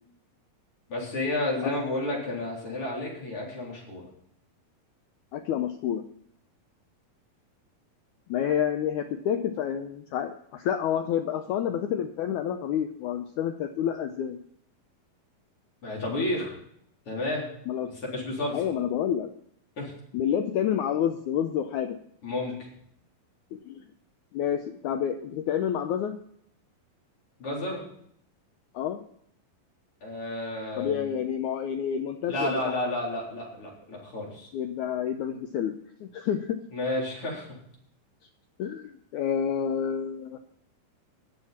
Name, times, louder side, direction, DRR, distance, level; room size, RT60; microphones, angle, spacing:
voice 1, 0.9-4.1 15.8-16.6 17.1-17.4 17.8-18.6 19.8-19.9 22.2-22.7 27.4-27.9 30.0-31.1 32.3-34.5 36.7-37.6, left 1 dB, 35° left, -3 dB, 4.6 m, -31 dB
voice 2, 5.3-6.1 8.3-14.4 17.7-17.9 18.5-19.3 20.1-22.0 23.5-23.8 24.3-26.2 28.7-29.0 30.8-32.6 34.5-35.7 36.0-36.6 38.6-40.4, left 9 dB, 90° left, 7 dB, 1.7 m, -29 dB
20.0 x 7.4 x 4.3 m, 0.70 s
omnidirectional pair, 4.3 m